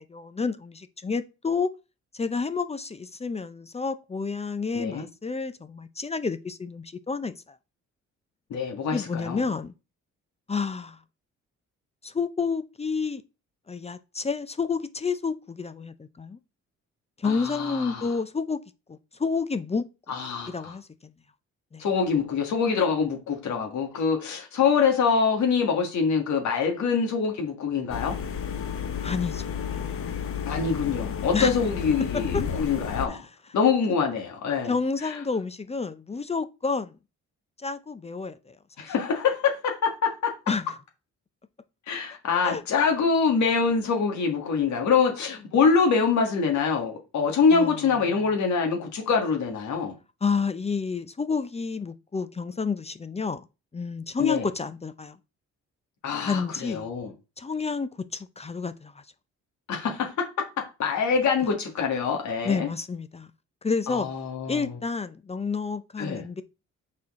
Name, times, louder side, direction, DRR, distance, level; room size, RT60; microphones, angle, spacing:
voice 1, 0.0-1.7 2.1-7.6 8.9-9.7 10.5-11.0 12.0-13.2 13.7-16.4 17.2-18.6 18.9-19.8 20.5-21.1 21.7-21.8 29.0-29.9 31.3-31.5 32.3-32.4 33.1-33.2 34.6-36.9 37.6-38.6 40.5-40.6 42.4-42.6 47.5-47.8 50.2-53.4 53.7-55.2 56.2-56.9 57.4-58.9 62.4-63.3 63.6-64.1 64.5-66.4, left 4 dB, 20° left, 0.6 m, -30 dB
voice 2, 8.5-9.4 17.2-18.1 20.1-20.8 21.8-28.2 30.5-33.3 33.5-34.7 35.0-35.2 38.8-40.3 41.9-49.9 54.2-54.4 56.0-57.1 59.7-62.7 63.9-64.7 66.0-66.2, left 5 dB, 70° left, 1.8 m, -25 dB
sound 1, 27.9-33.1, left 8 dB, 45° left, 0.9 m, -31 dB
6.2 x 4.3 x 3.7 m
cardioid pair, 90°, 30 cm